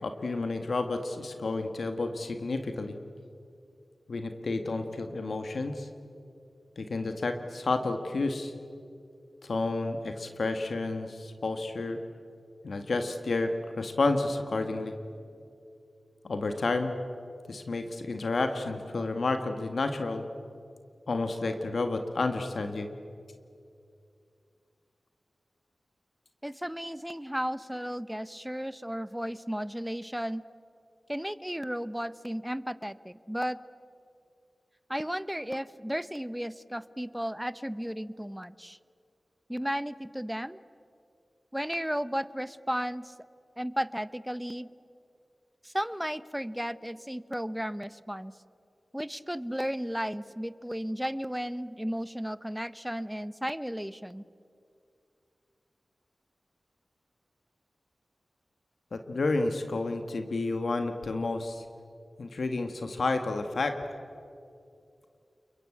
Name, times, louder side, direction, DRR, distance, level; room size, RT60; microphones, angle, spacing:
voice 1, 0.0-2.9 4.1-5.9 6.8-8.5 9.4-12.0 12.6-14.9 16.2-16.9 17.5-20.2 21.1-22.9 58.9-61.6 62.2-63.8, left 3 dB, 75° left, 6 dB, 1.7 m, -30 dB
voice 2, 26.4-30.4 31.1-33.6 34.9-38.8 39.5-40.6 41.5-43.1 43.6-44.7 45.6-48.3 48.9-54.2, equal, 5° right, 15 dB, 0.9 m, -34 dB
29.0 x 22.5 x 8.6 m, 2.5 s
cardioid pair, 50°, 0 cm